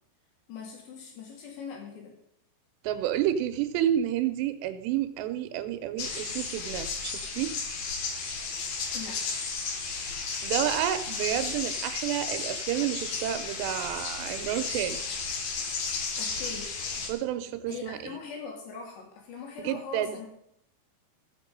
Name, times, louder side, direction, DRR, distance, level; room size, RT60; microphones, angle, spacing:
voice 1, 0.5-2.1 8.9-9.4 16.2-16.7 17.7-20.3, left 5 dB, 80° left, 0 dB, 4.7 m, -41 dB
voice 2, 2.8-7.5 9.9-10.0 10.4-15.0 17.1-18.1 19.6-20.2, right 11 dB, 90° right, 9 dB, 2.9 m, -30 dB
sound 1, 6.0-17.1, left 4 dB, 60° left, 2.1 m, -33 dB
15.5 x 6.1 x 5.2 m, 0.75 s
omnidirectional pair, 4.9 m